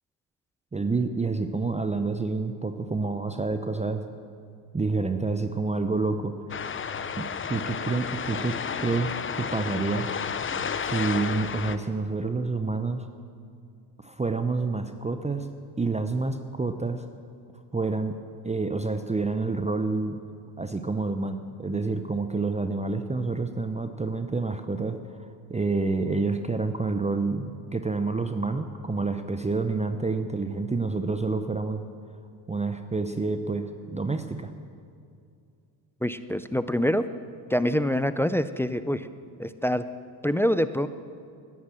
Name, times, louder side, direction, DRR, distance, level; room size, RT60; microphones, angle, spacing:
voice 1, 0.7-4.0 4.7-6.3 7.2-10.1 10.8-13.1 14.0-15.5 15.8-17.0 17.7-18.2 18.4-20.2 20.6-31.8 32.5-34.5, right 3 dB, 15° right, 8 dB, 0.7 m, -28 dB
sound 1, 6.5-11.8, left 6 dB, 25° left, 0.7 m, -32 dB
voice 2, 36.0-37.1 37.5-39.1 39.4-39.8 40.2-40.9, equal, 5° left, 13 dB, 0.3 m, -25 dB
13.5 x 10.5 x 7.4 m, 2.4 s
supercardioid pair, 75°, 50 cm